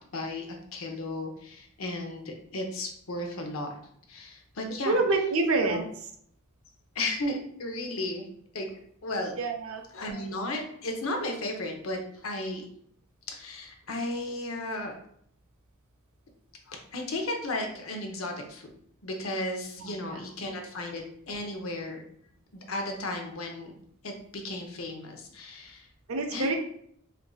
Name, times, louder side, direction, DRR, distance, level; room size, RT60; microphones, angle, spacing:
voice 1, 0.1-3.8 4.1-5.0 5.7-5.8 6.9-8.3 8.5-8.7 9.0-9.4 9.9-12.6 13.3-15.0 16.7-18.7 19.0-22.0 22.5-23.7 24.0-25.9 26.3-26.6, left 1 dB, 75° left, 3 dB, 0.7 m, -34 dB
voice 2, 4.9-5.8 9.4-9.8 19.8-20.2 26.1-26.6, right 3 dB, 80° right, 5 dB, 0.6 m, -27 dB
4.5 x 2.5 x 2.3 m, 0.66 s
head